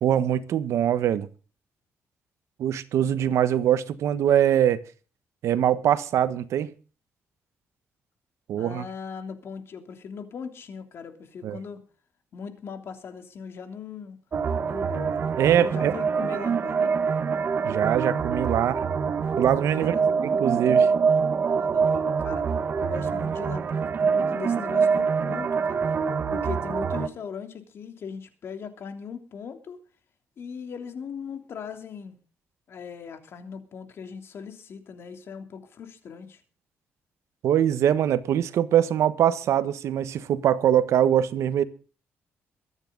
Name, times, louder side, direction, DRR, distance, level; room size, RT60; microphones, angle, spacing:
voice 1, 0.0-1.3 2.6-4.8 5.4-6.7 8.5-8.9 11.4-11.6 15.4-15.9 17.6-18.8 19.4-19.9 20.2-20.9 37.4-41.6, right 10 dB, 75° right, 1.3 m, -23 dB
voice 2, 8.6-11.8 12.3-14.2 14.6-17.3 19.7-20.0 21.4-22.4 22.8-25.8 26.3-29.8 30.4-32.1 32.7-36.4, left 6 dB, 55° left, 3.1 m, -39 dB
sound 1, 14.3-27.1, right 5 dB, 45° right, 1.5 m, -25 dB
23.5 x 9.8 x 3.9 m
cardioid pair, 135°, 5 cm